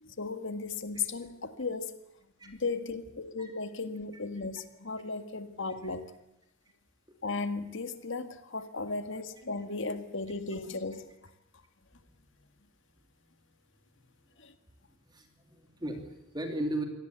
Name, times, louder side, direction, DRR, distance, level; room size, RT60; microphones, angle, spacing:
voice 1, 0.0-1.9 2.4-6.0 7.2-11.3 14.4-14.5, left 4 dB, 65° left, 9 dB, 1.8 m, -36 dB
voice 2, 15.1-16.8, right 1 dB, 20° right, 4 dB, 2.8 m, -36 dB
25.0 x 18.0 x 8.3 m, 0.88 s
head